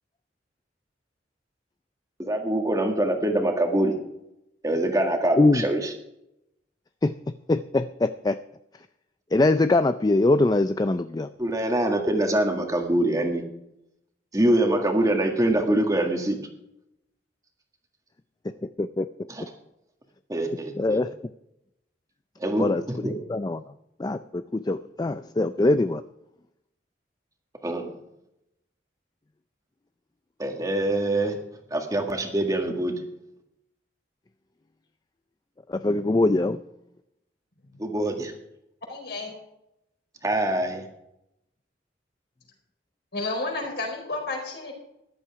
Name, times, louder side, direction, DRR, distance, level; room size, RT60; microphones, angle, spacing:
voice 1, 2.2-4.0 4.6-5.9 11.4-13.4 14.3-16.4 19.3-19.4 20.3-21.0 22.4-23.1 27.6-27.9 30.4-31.4 31.7-33.0 37.8-38.3 40.2-40.9, right 1 dB, 20° right, 3 dB, 1.8 m, -24 dB
voice 2, 7.5-8.4 9.3-11.3 18.8-19.1 20.8-21.1 22.6-22.8 23.3-23.6 24.0-26.0 35.7-36.6, left 2 dB, 20° left, 11 dB, 0.4 m, -22 dB
voice 3, 38.9-39.3 43.1-44.7, left 3 dB, 60° left, 1 dB, 4.6 m, -31 dB
14.5 x 11.5 x 4.8 m, 0.84 s
head